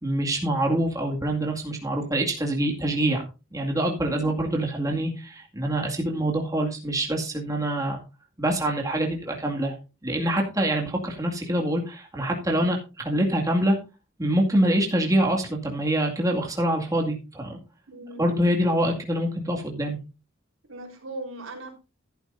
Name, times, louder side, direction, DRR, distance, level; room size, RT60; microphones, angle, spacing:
voice 1, 0.0-8.0 8.4-9.7 10.0-13.8 14.2-17.6 18.2-20.0, right 1 dB, 15° right, 0 dB, 2.2 m, -25 dB
voice 2, 4.0-4.4 17.9-18.2 20.7-21.7, right 2 dB, 85° right, 2 dB, 4.1 m, -38 dB
13.5 x 11.0 x 2.6 m, 0.29 s
head